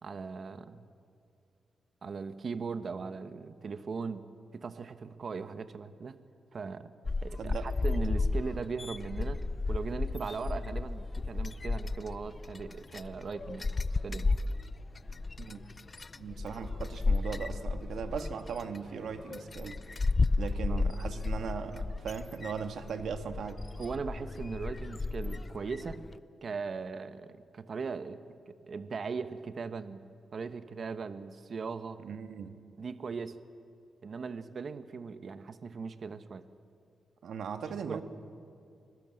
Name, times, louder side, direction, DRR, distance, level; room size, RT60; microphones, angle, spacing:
voice 1, 0.0-0.8 2.0-4.3 4.5-6.2 6.5-6.9 7.2-9.4 9.7-13.7 14.0-14.3 20.7-20.9 23.8-26.0 26.4-30.0 30.3-32.0 32.8-33.4 34.0-36.4 37.9-38.0, right 5 dB, 45° right, 11 dB, 1.0 m, -39 dB
sound 1, 7.0-26.2, left 3 dB, 30° left, 0.5 m, -33 dB
voice 2, 16.2-19.8 20.4-23.6 32.0-32.6 37.2-38.0, right 6 dB, 75° right, 8 dB, 1.7 m, -38 dB
25.0 x 21.5 x 7.7 m, 2.4 s
wide cardioid pair, 120°, 0 cm